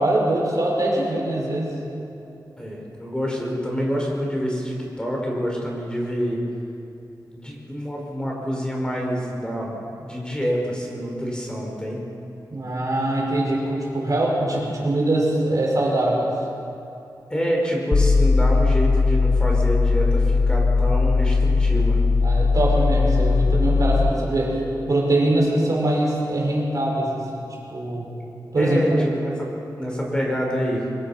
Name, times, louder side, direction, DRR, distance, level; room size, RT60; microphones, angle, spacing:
voice 1, 0.0-1.8 12.5-16.3 22.2-24.6 24.9-28.1 28.5-29.1, right 1 dB, 50° right, -2 dB, 5.5 m, -22 dB
voice 2, 2.6-6.4 7.3-12.0 17.3-22.0 28.6-29.5 29.8-30.8, equal, 10° left, -2 dB, 5.1 m, -27 dB
sound 1, 17.9-24.1, left 4 dB, 35° left, 0.5 m, -19 dB
24.5 x 21.5 x 5.9 m, 2.8 s
wide cardioid pair, 95°, 8 cm